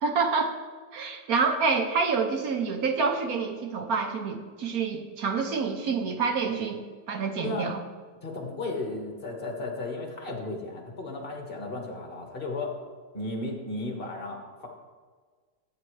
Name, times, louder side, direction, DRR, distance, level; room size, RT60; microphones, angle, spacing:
voice 1, 0.0-0.5 0.9-6.8 7.1-7.8, right 5 dB, 60° right, 5 dB, 1.1 m, -27 dB
voice 2, 8.2-12.7 13.1-14.7, left 2 dB, 30° left, 1 dB, 1.7 m, -34 dB
13.5 x 8.6 x 3.2 m, 1.5 s
omnidirectional pair, 2.0 m